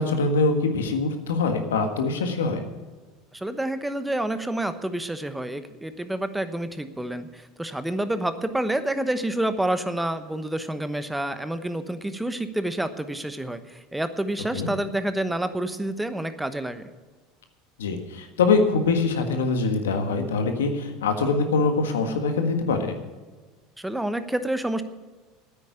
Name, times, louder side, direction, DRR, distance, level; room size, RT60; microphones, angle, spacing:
voice 1, 0.0-2.6 14.5-14.7 17.8-22.9, left 4 dB, 90° left, 6 dB, 1.6 m, -23 dB
voice 2, 3.3-16.9 23.8-24.8, right 1 dB, 5° right, 11 dB, 1.0 m, -28 dB
9.6 x 8.8 x 9.8 m, 1.3 s
hypercardioid pair, 85°, 0 cm